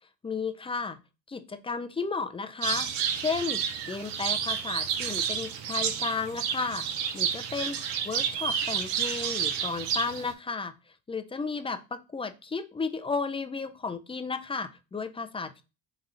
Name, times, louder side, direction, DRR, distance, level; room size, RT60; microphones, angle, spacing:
voice 1, 0.2-1.0 1.3-6.8 7.1-7.8 8.1-10.7 11.1-15.6, left 4 dB, 10° left, 9 dB, 0.4 m, -33 dB
sound 1, 2.6-10.3, right 8 dB, 85° right, 0.7 m, -30 dB
3.9 x 2.5 x 4.2 m, 0.30 s
supercardioid pair, 75°, 49 cm